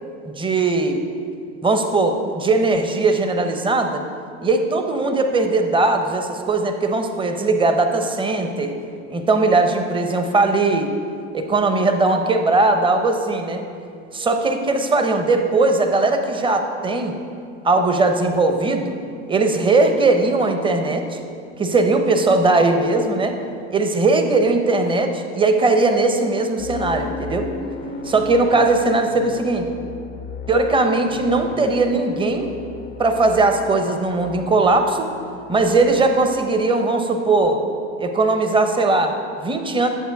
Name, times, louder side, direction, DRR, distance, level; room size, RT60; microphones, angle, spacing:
voice 1, 0.2-1.0 1.6-4.0 4.4-8.7 9.1-10.9 11.3-13.6 14.1-17.2 17.6-18.9 19.3-21.2 21.6-23.4 23.7-27.5 28.0-29.7 30.5-32.5 33.0-35.1 35.5-37.6 38.0-39.9, right 3 dB, 15° right, 6 dB, 0.9 m, -19 dB
sound 1, 26.6-36.5, left 5 dB, 25° left, 0.6 m, -36 dB
11.0 x 7.7 x 4.8 m, 2.4 s
hypercardioid pair, 100°, 35 cm